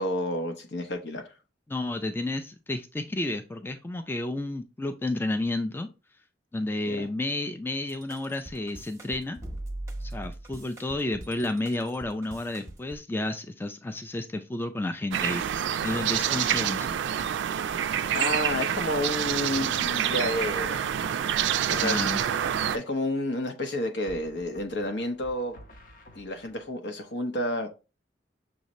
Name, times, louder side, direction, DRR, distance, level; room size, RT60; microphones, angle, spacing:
voice 1, 0.0-1.3 6.9-7.1 17.8-20.9 21.7-22.0 22.7-25.6 26.2-27.7, left 1 dB, 85° left, 0.9 m, -30 dB
voice 2, 1.7-5.9 6.5-9.4 10.0-17.0 21.8-22.2, left 2 dB, 10° left, 0.3 m, -31 dB
sound 1, 7.9-13.0, right 1 dB, 15° right, 0.7 m, -40 dB
sound 2, 15.1-22.8, right 9 dB, 90° right, 0.3 m, -27 dB
sound 3, 24.1-26.7, equal, 50° left, 0.7 m, -51 dB
6.4 x 2.7 x 3.0 m
head